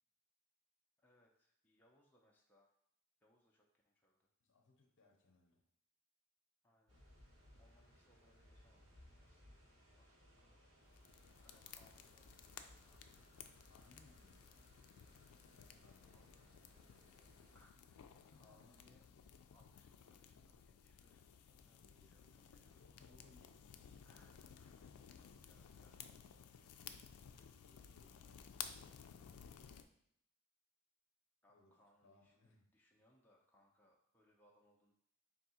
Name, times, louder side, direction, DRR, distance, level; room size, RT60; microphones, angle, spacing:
voice 1, 1.0-2.7 3.2-4.3 6.6-7.0 7.6-9.6 10.0-10.7 11.4-13.2 16.0-16.4 17.5-19.1 19.5-22.8 24.0-24.9 25.2-26.1 31.4-34.9, equal, 10° left, -2 dB, 0.5 m, -74 dB
voice 2, 4.4-5.6 10.4-10.6 13.6-14.7 15.6-16.8 17.6-17.9 18.1-18.9 21.7-24.0 24.8-25.0 26.4-29.6 31.5-31.8 32.0-32.8, left 2 dB, 55° left, 2 dB, 0.7 m, -70 dB
sound 1, 6.9-17.6, equal, 80° right, 1.5 m, -65 dB
sound 2, 10.9-29.8, left 8 dB, 75° left, 0.3 m, -57 dB
3.5 x 2.7 x 4.2 m, 0.74 s
head